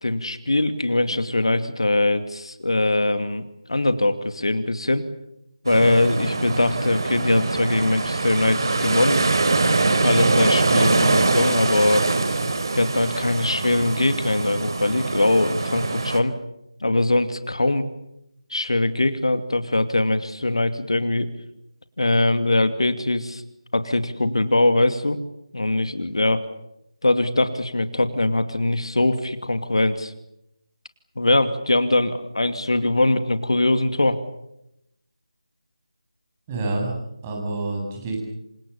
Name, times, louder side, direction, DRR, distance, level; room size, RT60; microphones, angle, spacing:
voice 1, 0.0-3.4 3.7-5.1 5.6-9.3 10.0-12.1 12.7-16.3 16.8-17.9 18.5-21.3 22.0-23.4 23.7-25.2 25.5-26.5 27.0-30.1 31.2-34.2, left 2 dB, 65° left, 9 dB, 2.6 m, -21 dB
sound 1, 5.7-16.2, right 3 dB, 45° right, 3.6 m, -23 dB
voice 2, 36.5-36.9 37.2-38.2, right 2 dB, 15° right, 1 dB, 8.0 m, -27 dB
28.5 x 26.5 x 7.1 m, 0.83 s
figure-of-eight pair, 160°, 3 cm